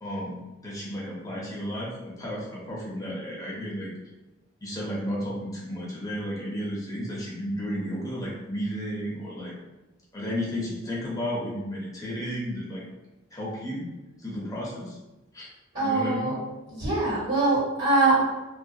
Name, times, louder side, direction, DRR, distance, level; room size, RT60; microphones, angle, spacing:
voice 1, 0.0-3.9 4.6-9.5 10.1-12.8 13.3-13.8 14.2-15.0 15.3-15.5 15.8-16.4, equal, 15° left, -5 dB, 0.5 m, -33 dB
voice 2, 15.7-16.4 16.7-18.2, right 2 dB, 55° right, -7 dB, 1.2 m, -23 dB
2.3 x 2.1 x 2.6 m, 1.0 s
head